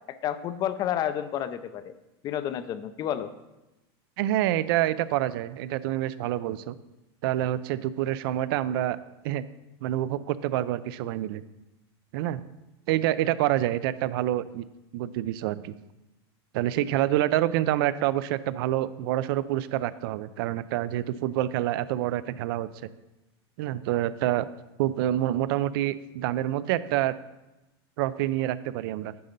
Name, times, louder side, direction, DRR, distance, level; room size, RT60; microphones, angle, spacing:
voice 1, 0.1-1.9 2.2-3.3, left 10 dB, 30° left, 13 dB, 0.4 m, -30 dB
voice 2, 4.2-6.7 7.2-9.0 9.2-9.4 9.8-11.4 12.1-12.4 12.9-14.7 14.9-15.7 16.5-22.9 23.6-24.5 24.8-27.1 28.0-29.1, right 13 dB, 60° right, 16 dB, 0.4 m, -27 dB
9.5 x 3.8 x 5.2 m, 0.99 s
supercardioid pair, 150°, 14 cm